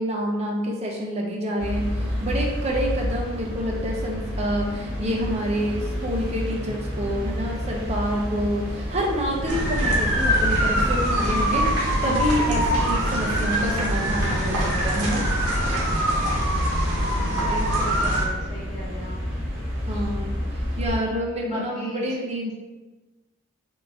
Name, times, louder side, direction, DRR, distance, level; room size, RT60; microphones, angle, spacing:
voice 1, 0.0-15.3 19.9-22.5, equal, 30° right, 0 dB, 0.5 m, -28 dB
sound 1, 1.6-21.0, equal, 60° right, 1.3 m, -31 dB
sound 2, 9.5-18.3, equal, 90° right, 0.9 m, -23 dB
voice 2, 16.8-19.2 21.4-22.2, equal, 30° left, -10 dB, 1.1 m, -36 dB
3.8 x 2.5 x 3.3 m, 1.2 s
head